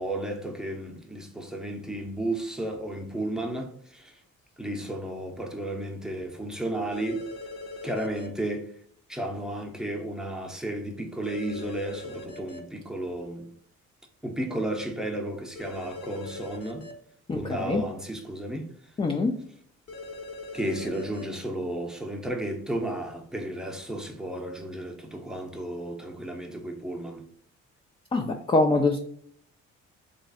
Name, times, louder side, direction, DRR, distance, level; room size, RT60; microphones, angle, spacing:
voice 1, 0.0-4.1 4.6-7.3 7.8-8.7 9.1-13.5 14.2-16.9 17.3-18.7 20.5-27.3, right 1 dB, ahead, 0.7 m, -33 dB
sound 1, 6.9-8.3 11.2-12.6 15.6-16.9 19.9-21.2, left 2 dB, 55° left, 1.0 m, -40 dB
voice 2, 17.3-17.8 19.0-19.4 28.1-29.0, left 3 dB, 20° left, 0.4 m, -24 dB
3.1 x 2.5 x 4.0 m
cardioid pair, 90°, 30 cm